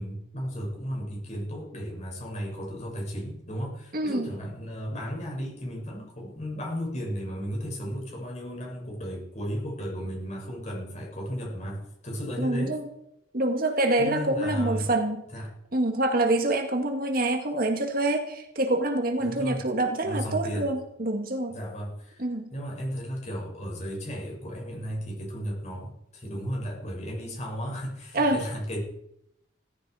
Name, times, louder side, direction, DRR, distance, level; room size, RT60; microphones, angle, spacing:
voice 1, 0.0-12.7 14.0-14.9 15.3-15.5 19.2-19.6 20.0-20.7 21.5-28.8, equal, 35° left, -1 dB, 6.5 m, -34 dB
voice 2, 3.9-4.3 12.4-12.9 13.3-15.2 15.7-21.6 22.2-22.5 28.1-28.4, right 2 dB, 50° right, 5 dB, 1.9 m, -26 dB
17.0 x 15.0 x 4.9 m, 0.78 s
head